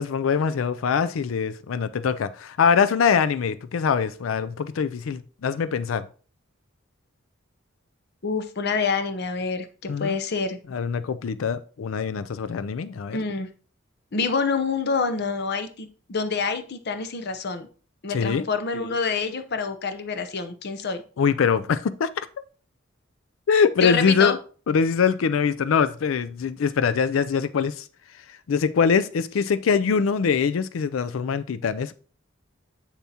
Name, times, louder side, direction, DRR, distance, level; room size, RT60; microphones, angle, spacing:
voice 1, 0.0-6.1 9.9-10.2 10.7-13.2 18.1-18.5 21.2-22.1 23.5-24.4 24.7-27.8 28.5-31.9, left 6 dB, 85° left, 0.4 m, -23 dB
voice 2, 8.2-10.6 13.1-13.5 14.1-17.7 18.0-21.0 23.8-24.3, left 5 dB, 55° left, 0.7 m, -27 dB
7.4 x 6.9 x 2.8 m
head